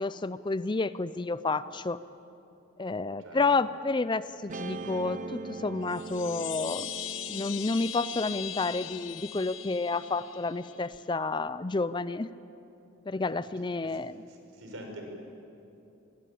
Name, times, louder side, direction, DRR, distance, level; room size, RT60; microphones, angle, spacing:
voice 1, 0.0-2.0 2.8-6.9 7.3-12.3 13.1-14.1, left 3 dB, 25° left, 15 dB, 0.5 m, -30 dB
Guitar, 4.5-11.0, right 3 dB, 40° right, 0.7 m, -43 dB
sound 1, 5.8-10.9, left 11 dB, 70° left, 1.2 m, -40 dB
voice 2, 13.5-14.0 14.3-15.1, right 1 dB, 75° right, 3 dB, 5.5 m, -45 dB
25.5 x 20.0 x 8.6 m, 2.8 s
head